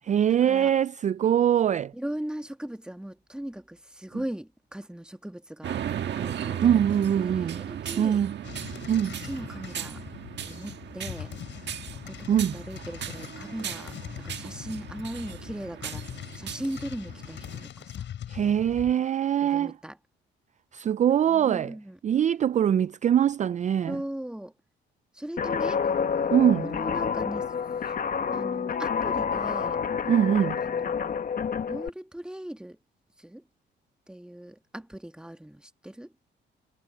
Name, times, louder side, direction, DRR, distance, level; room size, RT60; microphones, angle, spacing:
voice 1, 0.0-1.9 6.6-7.6 8.0-8.4 8.9-9.2 12.3-12.5 18.3-19.8 20.7-21.7 22.0-24.0 26.3-26.7 30.1-30.6, right 9 dB, 35° right, 0.4 m, -23 dB
voice 2, 1.9-5.8 6.2-6.8 7.2-8.2 9.2-10.0 10.5-11.3 11.9-13.9 14.2-16.0 16.3-18.1 19.4-20.0 21.3-22.0 23.9-24.5 25.1-25.8 26.1-26.2 26.6-27.5 28.3-29.8 30.6-31.3 31.7-32.8 33.2-33.4 34.1-36.1, right 1 dB, 5° right, 1.5 m, -38 dB
sound 1, 5.6-17.7, right 9 dB, 60° right, 1.5 m, -37 dB
sound 2, 8.4-18.9, left 10 dB, 65° left, 6.2 m, -42 dB
Guitar, 25.4-31.9, left 6 dB, 45° left, 1.3 m, -28 dB
cardioid pair, 90°, 20 cm